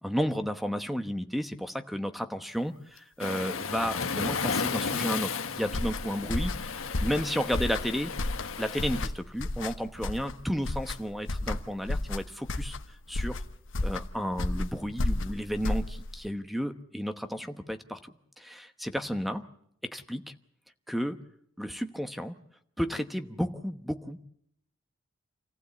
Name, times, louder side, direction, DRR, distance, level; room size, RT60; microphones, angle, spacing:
voice 1, 0.0-6.5 7.0-8.1 8.6-12.8 13.1-13.4 13.8-19.4 19.9-20.2 20.9-21.2 21.6-22.3 22.8-24.2, equal, ahead, 9 dB, 1.0 m, -32 dB
Waves surf, 3.2-9.1, left 5 dB, 85° left, 1.3 m, -34 dB
sound 1, 5.7-16.3, left 2 dB, 65° left, 1.1 m, -33 dB
27.5 x 15.5 x 8.4 m, 0.74 s
head